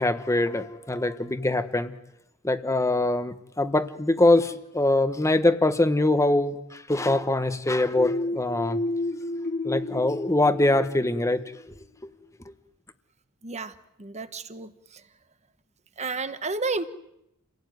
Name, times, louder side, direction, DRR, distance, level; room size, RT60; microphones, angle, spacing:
voice 1, 0.0-1.9 2.4-8.8 9.6-11.4, left 2 dB, 15° left, 10 dB, 1.2 m, -23 dB
sound 1, 8.0-11.6, left 2 dB, 45° left, 1.6 m, -31 dB
voice 2, 13.4-13.7 14.0-14.7 16.0-16.9, right 3 dB, 30° right, 11 dB, 1.3 m, -31 dB
29.0 x 17.5 x 9.4 m, 0.85 s
head